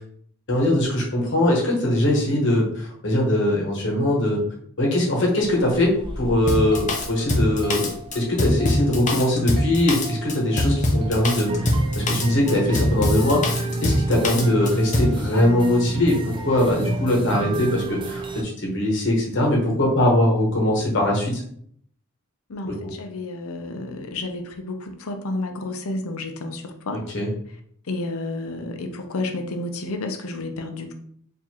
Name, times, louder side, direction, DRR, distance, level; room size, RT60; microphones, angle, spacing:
voice 1, 0.5-4.4 4.8-7.9 8.1-11.5 12.1-21.4 22.6-22.9 27.1-27.3, left 1 dB, 55° left, -2 dB, 1.0 m, -21 dB
sound 1, 5.4-18.4, right 2 dB, 20° right, 0.4 m, -31 dB
Drum kit, 6.5-15.2, left 1 dB, 35° left, 0.6 m, -23 dB
voice 2, 22.5-27.0 27.9-30.9, left 2 dB, 75° left, 5 dB, 0.6 m, -31 dB
4.6 x 2.6 x 2.9 m, 0.63 s
head